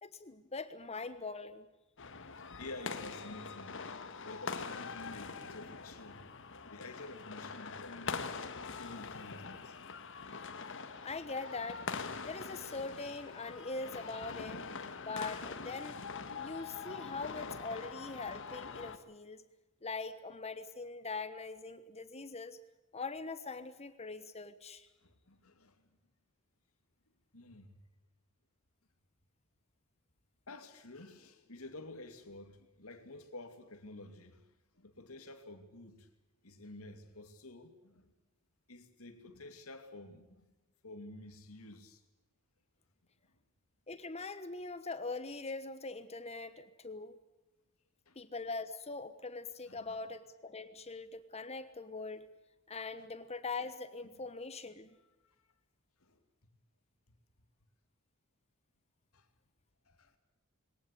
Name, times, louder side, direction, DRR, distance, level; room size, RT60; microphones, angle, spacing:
voice 1, 0.0-1.7 11.0-11.8 12.2-14.6 15.0-16.0 16.4-19.4 19.8-22.6 22.9-24.9 43.9-47.2 48.1-52.3 52.7-55.0, left 3 dB, 30° left, 1.2 m, -42 dB
sound 1, 2.0-19.0, left 5 dB, 60° left, 1.7 m, -43 dB
voice 2, 2.6-3.8 4.2-6.2 6.7-8.3 8.7-9.8 14.8-14.9 16.0-16.5 25.0-25.9 27.3-27.8 30.5-36.1 36.4-38.1 38.7-40.5 40.8-42.0 48.1-48.2 49.7-50.0 53.0-53.1 55.2-55.3 56.0-56.2 59.1-59.3 59.9-60.2, left 2 dB, 80° left, 2.6 m, -51 dB
22.0 x 19.0 x 8.4 m
head